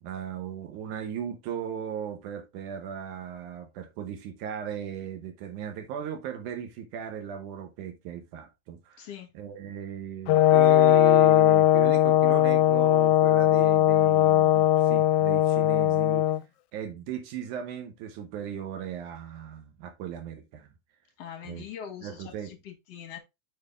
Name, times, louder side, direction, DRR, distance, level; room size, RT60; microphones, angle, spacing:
voice 1, 0.0-9.1 9.3-16.2 16.7-20.7 21.4-21.6 22.0-22.5, right 9 dB, 85° right, 2.6 m, -37 dB
voice 2, 9.0-9.3 21.2-23.2, left 9 dB, 60° left, 2.1 m, -42 dB
Brass instrument, 10.3-16.4, left 13 dB, 85° left, 2.0 m, -20 dB
6.4 x 5.1 x 3.5 m
omnidirectional pair, 3.4 m